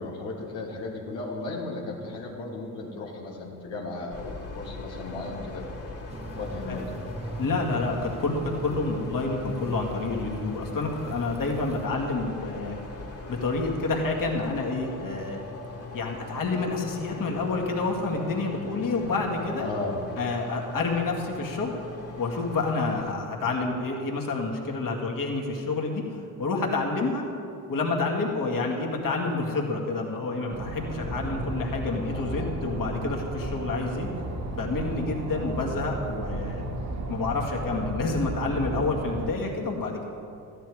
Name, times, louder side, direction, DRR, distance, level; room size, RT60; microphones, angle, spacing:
voice 1, 0.0-5.6 6.3-6.8 19.6-20.0 32.1-32.7, left 2 dB, 80° left, -4 dB, 1.7 m, -35 dB
sound 1, 4.1-23.1, left 3 dB, 35° left, 2.4 m, -41 dB
sound 2, 6.1-11.8, right 2 dB, 15° right, 0.7 m, -40 dB
voice 2, 7.4-12.8 13.3-15.4 15.9-19.7 20.2-21.7 22.2-27.2 27.7-34.1 34.5-36.6 37.1-40.0, left 3 dB, 50° left, 0 dB, 2.2 m, -28 dB
sound 3, 30.5-39.3, right 2 dB, 40° right, 1.6 m, -33 dB
13.5 x 10.0 x 4.9 m, 2.7 s
hypercardioid pair, 55°, 43 cm